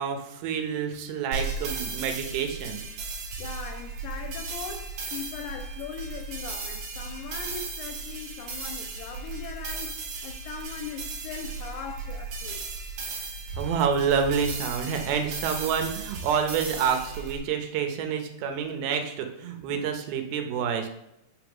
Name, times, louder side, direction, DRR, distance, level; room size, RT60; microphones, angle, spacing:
voice 1, 0.0-2.8 13.6-20.9, right 7 dB, 80° right, 2.7 m, -28 dB
sound 1, 1.3-17.4, right 4 dB, 60° right, 2.7 m, -36 dB
voice 2, 3.4-12.6 19.7-19.9, left 7 dB, 80° left, 2.0 m, -40 dB
5.7 x 3.6 x 5.9 m
omnidirectional pair, 4.3 m